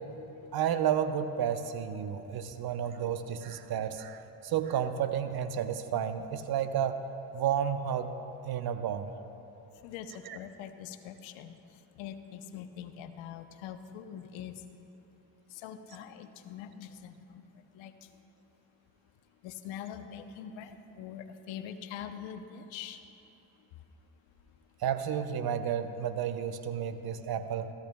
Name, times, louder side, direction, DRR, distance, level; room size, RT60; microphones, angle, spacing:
voice 1, 0.5-7.0 7.3-8.1 8.4-9.1 10.3-10.4 24.8-27.7, right 9 dB, 50° right, 9 dB, 0.8 m, -31 dB
voice 2, 9.8-11.6 12.0-14.6 15.5-17.4 17.7-17.9 19.4-23.0, left 9 dB, 75° left, 9 dB, 0.8 m, -43 dB
17.0 x 14.0 x 2.2 m, 3.0 s
supercardioid pair, 70°, 47 cm